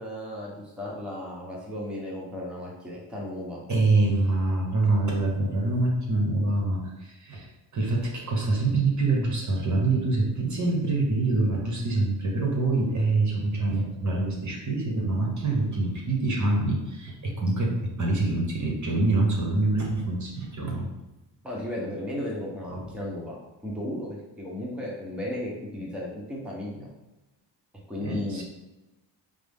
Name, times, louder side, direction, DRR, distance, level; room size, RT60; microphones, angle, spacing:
voice 1, 0.0-3.6 21.4-23.4 23.6-26.9 27.9-28.4, left 1 dB, ahead, -4 dB, 0.9 m, -35 dB
voice 2, 3.7-20.9 22.7-22.9 28.0-28.4, right 2 dB, 40° right, -1 dB, 1.1 m, -25 dB
5.1 x 2.0 x 3.5 m, 1.0 s
cardioid pair, 90°, 45 cm